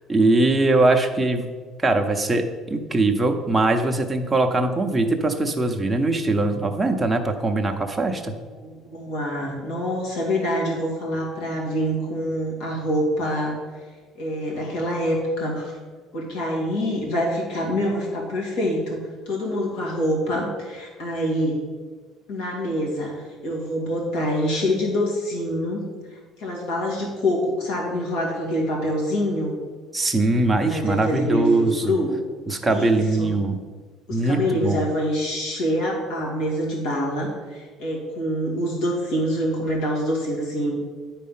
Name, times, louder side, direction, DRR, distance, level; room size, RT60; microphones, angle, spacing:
voice 1, 0.1-1.5 1.8-2.4 2.7-8.3 29.9-31.9 32.5-33.6 34.1-34.8, right 2 dB, 10° right, 3 dB, 0.7 m, -21 dB
voice 2, 8.5-13.6 14.2-15.8 16.1-19.0 19.3-21.6 22.3-23.1 23.4-25.9 26.1-29.5 30.7-32.1 32.7-33.3 34.1-40.8, equal, 80° left, -1 dB, 2.3 m, -25 dB
9.7 x 4.2 x 5.6 m, 1.5 s
cardioid pair, 155°, 0 cm